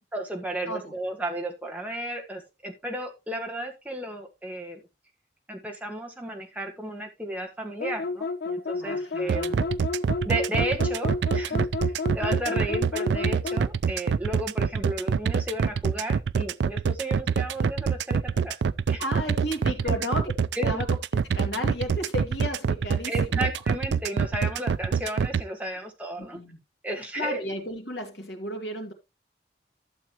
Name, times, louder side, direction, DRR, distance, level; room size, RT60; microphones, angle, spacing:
voice 1, 0.1-4.8 5.5-9.5 10.2-11.7 12.1-18.6 18.9-19.0 19.8-20.0 20.5-20.9 23.1-26.4 26.8-27.4, right 1 dB, 10° right, 1.6 m, -33 dB
sound 1, 7.8-13.7, left 3 dB, 60° left, 0.5 m, -30 dB
voice 2, 8.7-9.8 19.0-20.3 20.6-20.9 21.1-23.4 26.2-26.6 27.1-28.9, left 1 dB, 80° left, 2.4 m, -33 dB
sound 2, 9.3-25.4, right 6 dB, 80° right, 0.4 m, -25 dB
12.5 x 7.1 x 3.0 m
head